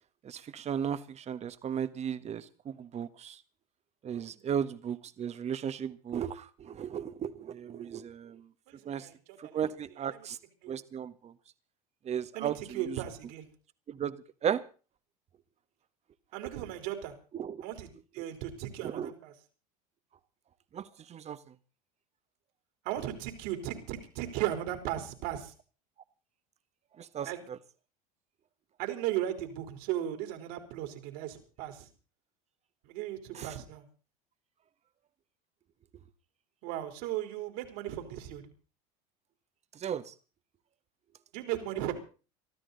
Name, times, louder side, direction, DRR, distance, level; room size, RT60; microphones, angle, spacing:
voice 1, 0.2-3.4 4.0-8.4 8.8-9.1 9.4-10.4 10.7-11.3 12.0-13.0 13.9-14.1 14.4-14.6 17.3-17.6 18.2-18.3 18.8-19.1 20.7-21.4 27.0-27.6 33.3-33.5 39.7-40.1, right 8 dB, 35° right, 1.5 m, -35 dB
voice 2, 8.7-9.7 10.1-10.3 10.6-10.7 12.3-13.5 16.3-17.1 17.6-17.9 18.1-19.3 22.8-25.5 27.2-27.4 28.8-31.9 32.8-33.9 36.6-38.4 41.3-41.9, right 12 dB, 70° right, 3.9 m, -36 dB
23.0 x 13.5 x 4.1 m
hypercardioid pair, 85°, 18 cm